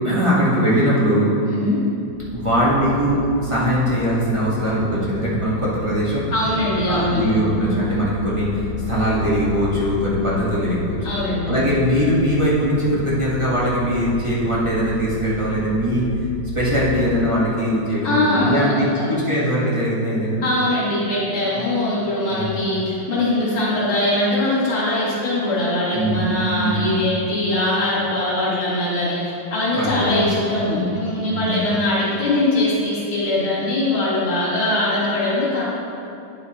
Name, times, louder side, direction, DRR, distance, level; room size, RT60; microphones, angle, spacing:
voice 1, 0.0-1.3 2.3-6.2 6.9-11.0 11.5-16.1 16.5-20.4 21.5-21.6 22.3-22.6 25.9-26.3 26.6-26.9 29.8-30.3 30.7-30.9 31.2-31.6, equal, 15° right, -8 dB, 1.3 m, -21 dB
sound 1, 2.0-16.9, left 3 dB, 90° right, 2.6 m, -33 dB
voice 2, 6.3-7.3 11.0-11.5 18.0-19.1 20.4-35.6, left 1 dB, 75° left, -8 dB, 2.7 m, -21 dB
9.5 x 7.1 x 3.1 m, 2.7 s
omnidirectional pair, 2.2 m